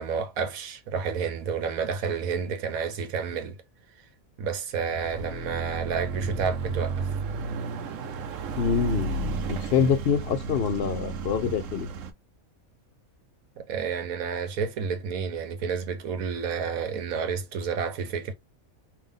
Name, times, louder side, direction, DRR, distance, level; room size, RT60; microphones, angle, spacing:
voice 1, 0.0-3.6 4.4-7.1 13.6-18.3, right 6 dB, 85° right, 1.3 m, -30 dB
Car passing by / Accelerating revving vroom, 4.8-12.1, right 4 dB, 70° right, 1.0 m, -32 dB
voice 2, 8.5-9.1 9.5-11.9, left 7 dB, 65° left, 0.6 m, -25 dB
3.6 x 2.7 x 3.6 m
omnidirectional pair, 1.5 m